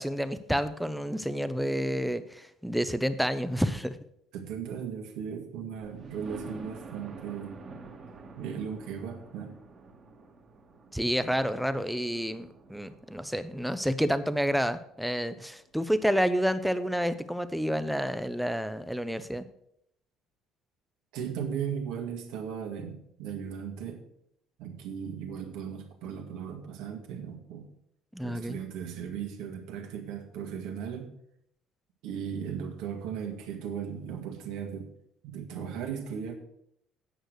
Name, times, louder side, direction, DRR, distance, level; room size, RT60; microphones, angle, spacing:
voice 1, 0.0-4.0 10.9-19.4 28.1-28.6, equal, ahead, 11 dB, 0.6 m, -29 dB
voice 2, 4.3-7.6 8.4-9.5 11.3-11.4 21.1-24.0 24.6-27.7 28.2-31.1 32.0-34.9 35.2-36.3, right 7 dB, 85° right, 3 dB, 2.0 m, -37 dB
Thunder, 5.8-15.5 16.1-16.2 16.6-16.7 17.0-17.1, right 3 dB, 35° right, 1.7 m, -49 dB
9.1 x 6.5 x 6.4 m, 0.74 s
cardioid pair, 125°, 0 cm